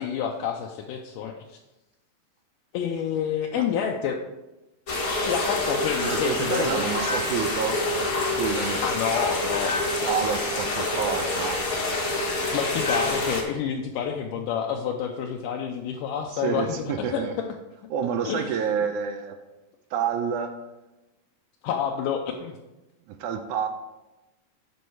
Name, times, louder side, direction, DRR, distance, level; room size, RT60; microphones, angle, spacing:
voice 1, 0.0-1.6 2.7-4.2 5.2-6.9 8.8-9.8 12.5-17.2 18.2-18.6 21.6-22.6, left 8 dB, 80° left, 1 dB, 2.1 m, -28 dB
sound 1, 4.9-13.4, left 2 dB, 55° left, 0.9 m, -27 dB
voice 2, 6.0-7.8 8.4-8.8 10.0-11.6 16.3-17.3 17.9-19.4 19.9-20.5 23.1-23.7, right 7 dB, 80° right, 7 dB, 1.9 m, -28 dB
9.3 x 5.4 x 4.6 m, 1.0 s
omnidirectional pair, 3.9 m